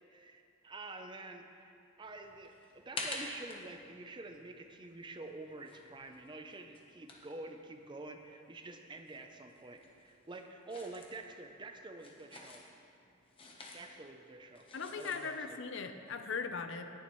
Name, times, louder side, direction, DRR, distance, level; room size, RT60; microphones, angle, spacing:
voice 1, 0.1-12.6 13.7-14.7 15.0-15.6, right 2 dB, 25° right, 5 dB, 0.5 m, -48 dB
sound 1, 2.0-8.3 8.6-15.4, left 2 dB, 25° left, 1.0 m, -49 dB
voice 2, 14.7-16.9, left 5 dB, 60° left, 8 dB, 0.6 m, -39 dB
18.0 x 7.0 x 3.1 m, 2.6 s
head